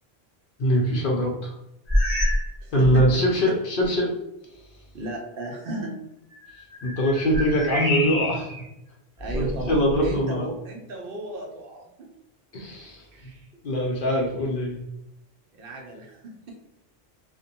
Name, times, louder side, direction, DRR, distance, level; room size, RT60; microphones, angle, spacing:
voice 1, 0.6-1.5 2.7-4.1 6.8-8.5 9.3-10.5 12.5-13.0 13.6-14.8, equal, 60° left, -1 dB, 0.7 m, -23 dB
sound 1, 1.9-2.5 2.8-3.2 3.8-3.9 6.3-8.6 9.2-10.2, left 1 dB, 25° right, 1.0 m, -27 dB
voice 2, 2.6-3.2 4.9-6.0 9.2-12.1 13.1-13.5 15.5-16.6, right 1 dB, 65° right, 0 dB, 0.7 m, -35 dB
2.5 x 2.1 x 2.8 m, 0.85 s
omnidirectional pair, 1.1 m